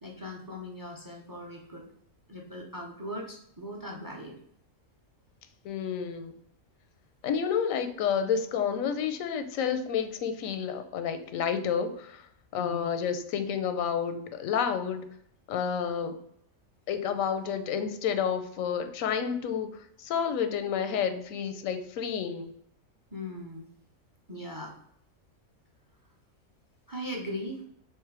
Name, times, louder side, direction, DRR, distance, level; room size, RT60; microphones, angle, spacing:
voice 1, 0.0-1.9 2.3-4.3 12.5-12.9 23.1-23.7 24.3-24.8 26.9-27.6, left 1 dB, 20° right, 0 dB, 0.6 m, -39 dB
voice 2, 5.6-6.4 7.2-12.2 12.5-15.0 15.5-16.1 16.9-19.7 20.0-22.5, left 7 dB, 85° left, 9 dB, 1.0 m, -30 dB
3.4 x 3.3 x 4.6 m, 0.70 s
omnidirectional pair, 1.4 m